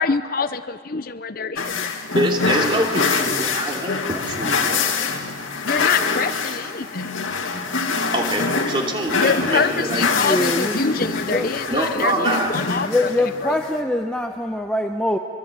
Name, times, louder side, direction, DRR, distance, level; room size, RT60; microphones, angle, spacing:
voice 1, 0.0-2.0 5.6-7.2 9.1-13.6, left 5 dB, 45° left, 12 dB, 0.6 m, -25 dB
sound 1, 1.6-13.8, left 4 dB, 85° left, 2.3 m, -24 dB
voice 2, 2.1-5.1 8.1-10.1 11.7-12.5, right 1 dB, 25° right, 1 dB, 2.9 m, -24 dB
voice 3, 10.2-11.5 12.9-15.2, left 1 dB, 5° left, 3 dB, 0.8 m, -23 dB
24.0 x 24.0 x 7.5 m, 2.3 s
head